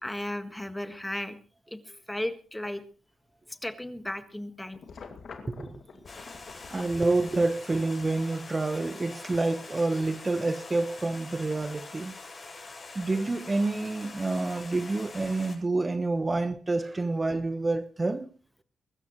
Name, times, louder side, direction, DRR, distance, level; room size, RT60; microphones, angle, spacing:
voice 1, 0.0-1.4 1.7-2.8 3.5-4.8, left 1 dB, 10° left, 1.6 m, -35 dB
sound 1, 4.7-7.5, left 5 dB, 65° left, 2.2 m, -47 dB
voice 2, 5.4-5.8 6.7-12.2 12.9-18.3, right 2 dB, 25° right, 1.1 m, -28 dB
Stream, 6.1-15.6, left 3 dB, 40° left, 7.0 m, -44 dB
23.0 x 13.0 x 3.1 m
cardioid pair, 95°, 0 cm